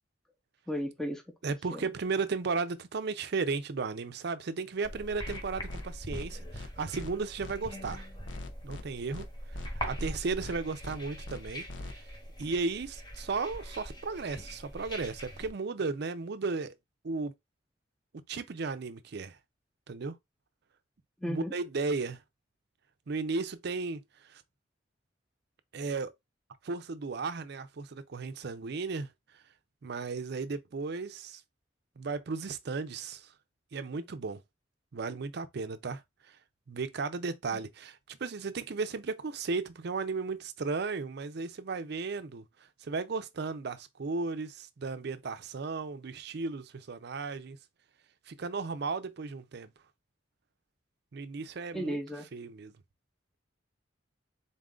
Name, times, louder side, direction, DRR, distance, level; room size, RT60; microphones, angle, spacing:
voice 1, 0.7-1.2 1.7-1.9 21.2-21.5 51.7-52.3, equal, 5° left, 0.7 m, -34 dB
voice 2, 1.4-8.1 8.6-12.1 12.4-16.7 17.0-17.3 18.3-19.4 19.9-20.2 21.2-22.2 23.1-24.4 25.7-26.1 26.6-29.4 29.8-31.4 32.0-33.3 33.7-34.4 34.9-36.4 36.7-42.4 42.8-47.6 48.3-49.7 51.1-52.0 52.3-52.7, right 4 dB, 60° right, 0.5 m, -35 dB
sound 1, 4.8-15.5, equal, 25° left, 1.0 m, -42 dB
sound 2, 5.2-5.4 5.7-5.8 6.1-6.3 6.5-6.7 7.0-7.1 7.4-7.5 7.8-8.0 8.2-8.8 9.1-9.3 9.5-9.7 10.0-10.1 10.4-10.5 10.8-11.0 11.2-11.4 11.7-11.9, left 3 dB, 75° left, 0.7 m, -42 dB
4.0 x 2.4 x 3.7 m
head